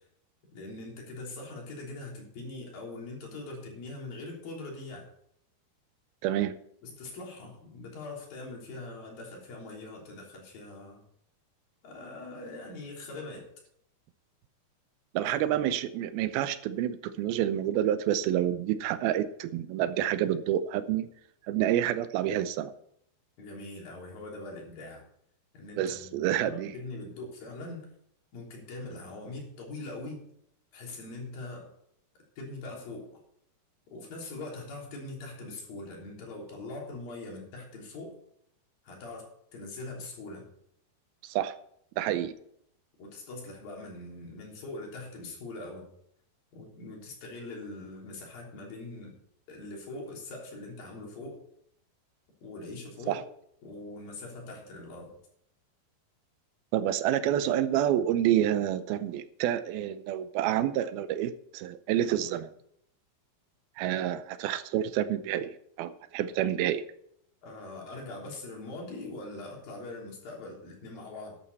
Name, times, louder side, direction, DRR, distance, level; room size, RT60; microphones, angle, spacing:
voice 1, 0.5-5.1 6.8-11.0 11.8-13.5 15.2-15.5 23.4-25.0 25.5-27.9 28.3-30.2 30.7-31.7 32.4-33.2 33.9-38.1 38.8-40.5 43.0-45.9 46.5-49.1 49.5-51.4 52.4-53.2 53.6-55.2 67.4-71.4, left 2 dB, 60° left, -1 dB, 5.0 m, -42 dB
voice 2, 6.2-6.5 15.1-21.1 21.5-22.7 25.8-26.7 41.2-41.5 42.0-42.3 53.1-53.2 56.7-62.5 63.8-66.8, right 11 dB, 80° right, 12 dB, 2.4 m, -28 dB
12.0 x 11.0 x 4.1 m, 0.69 s
omnidirectional pair, 4.8 m